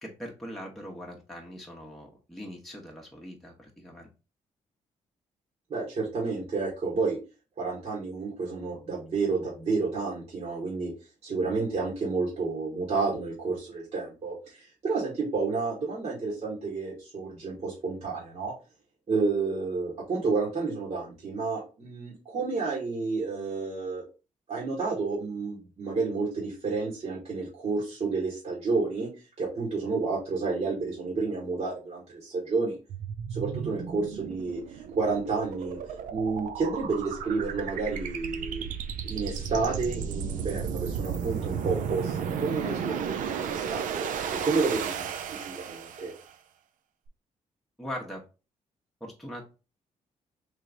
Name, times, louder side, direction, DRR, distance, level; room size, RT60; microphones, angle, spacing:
voice 1, 0.0-4.1 47.8-48.2 49.0-49.4, equal, ahead, -2 dB, 1.1 m, -41 dB
voice 2, 5.7-7.2 7.6-10.9 11.2-18.5 19.1-24.0 24.5-29.1 29.4-32.8 33.3-35.8 36.1-38.7 39.0-46.1, right 4 dB, 50° right, -5 dB, 1.7 m, -30 dB
sound 1, 32.9-46.3, right 7 dB, 75° right, 0.5 m, -34 dB
3.4 x 2.9 x 3.8 m, 0.32 s
cardioid pair, 65°, 14 cm